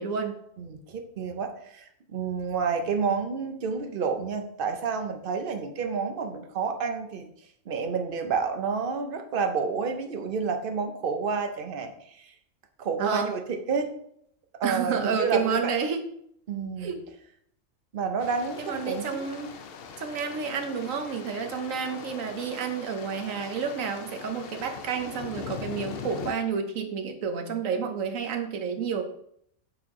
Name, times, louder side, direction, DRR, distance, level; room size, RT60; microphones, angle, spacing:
voice 1, 0.0-0.4 13.0-13.3 14.6-16.0 16.8-17.0 18.6-19.5 20.0-29.0, right 6 dB, 65° right, 5 dB, 1.2 m, -30 dB
voice 2, 0.6-7.3 7.7-12.3 12.8-13.9 14.6-15.8 16.5-16.9 17.9-19.2, right 5 dB, 50° right, 5 dB, 0.7 m, -29 dB
sound 1, 18.2-26.3, left 6 dB, 60° left, 0.6 m, -41 dB
7.7 x 4.3 x 3.7 m, 0.71 s
omnidirectional pair, 1.6 m